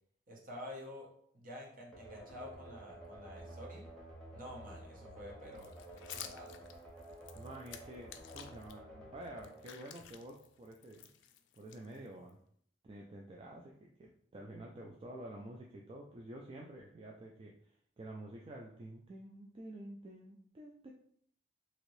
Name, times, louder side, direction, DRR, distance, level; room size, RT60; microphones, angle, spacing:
voice 1, 0.3-1.1 1.3-3.8 4.3-6.7, left 1 dB, 50° right, -2 dB, 0.9 m, -49 dB
sound 1, 1.9-10.6, right 1 dB, 5° left, 0.8 m, -52 dB
sound 2, 5.6-8.7 9.2-12.3, left 10 dB, 80° left, 0.3 m, -52 dB
voice 2, 7.3-11.1 11.6-12.4 12.8-17.5 18.0-20.9, right 1 dB, 30° right, -1 dB, 0.3 m, -49 dB
2.9 x 2.6 x 3.1 m, 0.65 s
head